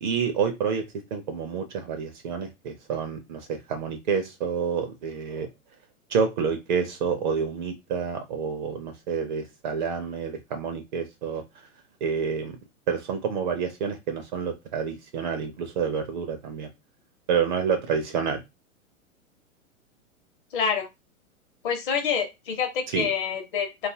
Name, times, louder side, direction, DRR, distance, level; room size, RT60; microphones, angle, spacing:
voice 1, 0.0-5.5 6.1-11.4 12.0-12.6 12.9-16.7 17.3-18.4 22.9-23.1, right 6 dB, 35° right, 6 dB, 0.5 m, -28 dB
voice 2, 20.5-20.9 21.6-23.9, left 6 dB, 40° left, 3 dB, 0.8 m, -27 dB
2.5 x 2.4 x 2.7 m, 0.22 s
figure-of-eight pair, 110°, 41 cm